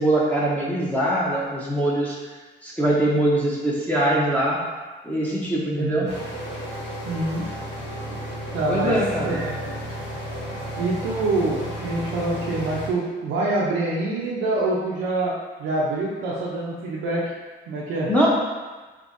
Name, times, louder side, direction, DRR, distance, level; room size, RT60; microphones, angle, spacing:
voice 1, 0.0-2.2 2.6-4.6 5.0-6.1 8.1-8.2 8.7-9.3 18.1-18.3, right 1 dB, 5° left, -6 dB, 0.8 m, -22 dB
voice 2, 5.7-6.1 7.0-7.4 8.5-9.8 10.8-15.3 15.6-17.3 17.7-18.1, right 2 dB, 90° right, -6 dB, 0.6 m, -26 dB
sound 1, 6.1-12.9, equal, 60° left, 1.1 m, -33 dB
4.7 x 2.9 x 2.6 m, 1.3 s
cardioid pair, 90°, 20 cm